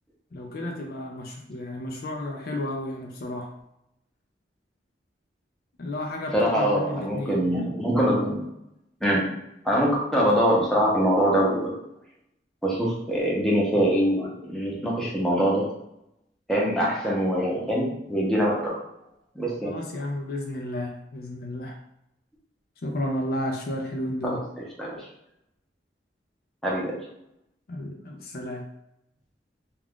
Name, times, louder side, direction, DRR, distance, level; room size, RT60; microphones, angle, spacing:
voice 1, 0.3-3.5 5.8-7.4 19.6-21.8 22.8-24.4 27.7-28.6, left 1 dB, 55° left, 1 dB, 0.4 m, -32 dB
voice 2, 6.3-8.5 9.0-9.3 9.6-11.7 12.6-15.7 16.5-18.7 19.4-19.8 24.2-24.4 24.8-25.1 26.6-27.0, equal, 5° left, -5 dB, 0.7 m, -23 dB
2.4 x 2.3 x 3.5 m, 0.81 s
head